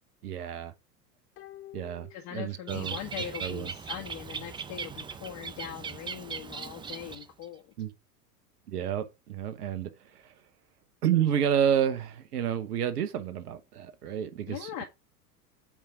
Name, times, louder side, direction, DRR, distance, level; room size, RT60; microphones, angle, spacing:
voice 1, 0.2-0.7 1.7-2.9 3.4-3.7 7.8-7.9 8.7-10.2 11.0-14.8, right 9 dB, 70° right, 1.1 m, -30 dB
sound 1, 1.4-3.0 3.3-3.4, left 13 dB, 25° left, 0.7 m, -50 dB
voice 2, 2.1-7.7 14.4-14.8, left 10 dB, 45° left, 1.8 m, -41 dB
Bird, 2.7-7.5, right 5 dB, 10° right, 0.5 m, -39 dB
8.6 x 3.6 x 4.9 m
figure-of-eight pair, 90°, 48 cm